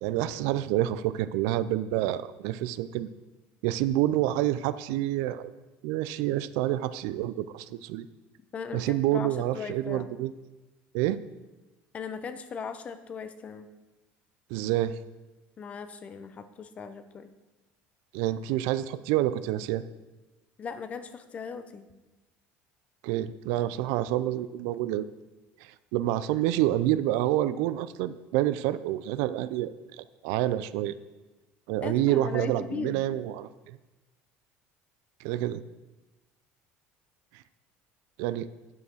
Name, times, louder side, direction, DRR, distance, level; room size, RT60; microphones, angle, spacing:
voice 1, 0.0-3.1 3.6-5.5 5.8-8.1 8.7-10.3 10.9-11.2 14.5-15.0 18.1-19.8 23.0-25.1 25.6-31.0 31.7-33.8 35.2-35.6 38.2-38.5, right 14 dB, 80° right, 14 dB, 0.4 m, -28 dB
voice 2, 8.5-10.1 11.9-13.7 15.6-17.3 20.6-21.9 31.8-33.0, left 6 dB, 30° left, 11 dB, 0.7 m, -38 dB
9.3 x 5.6 x 6.3 m, 1.1 s
cardioid pair, 150°, 5 cm